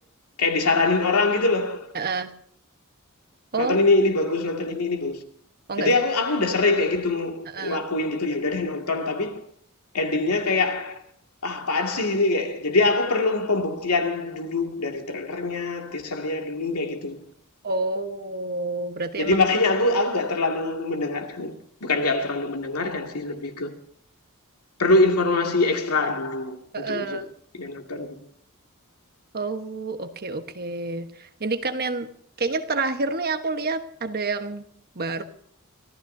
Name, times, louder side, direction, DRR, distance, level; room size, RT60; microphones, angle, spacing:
voice 1, 0.4-1.9 3.6-5.2 5.8-9.4 9.9-11.0 11.4-17.2 19.2-21.6 21.8-23.7 24.8-27.3 27.6-28.2, left 2 dB, 90° left, 2.3 m, -24 dB
voice 2, 1.9-2.3 3.5-3.8 5.7-6.0 7.5-7.8 17.6-19.4 26.7-27.3 29.3-32.1 32.4-34.6 34.9-35.2, right 3 dB, 45° right, 1.2 m, -28 dB
25.0 x 15.0 x 2.7 m
head